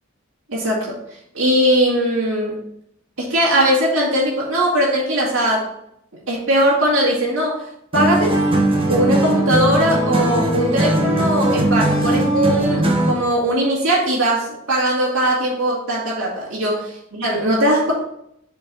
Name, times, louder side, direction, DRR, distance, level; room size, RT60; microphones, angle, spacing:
voice 1, 0.5-1.0 1.3-2.6 3.2-5.7 6.3-8.4 8.9-16.9 17.2-17.9, right 1 dB, 65° right, -6 dB, 2.3 m, -19 dB
sound 1, 7.9-13.3, right 1 dB, 25° right, 1.2 m, -19 dB
7.2 x 4.7 x 4.3 m, 0.74 s
head